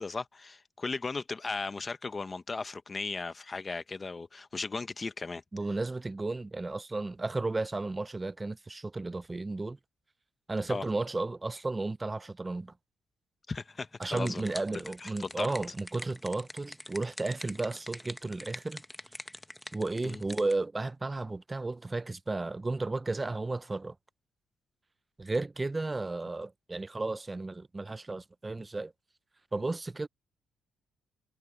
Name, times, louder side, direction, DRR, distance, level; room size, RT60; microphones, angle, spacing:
voice 1, 0.0-5.4 10.7-10.8 13.5-14.4 14.7-15.5 20.0-20.2, left 4 dB, 30° left, 1.1 m, -36 dB
voice 2, 5.5-9.8 10.5-12.7 14.0-18.8 19.7-23.9 25.2-28.9 29.5-30.1, right 2 dB, 20° right, 0.5 m, -33 dB
sound 1, 13.7-20.6, left 1 dB, 5° left, 0.8 m, -45 dB
cardioid pair, 90°, 0 cm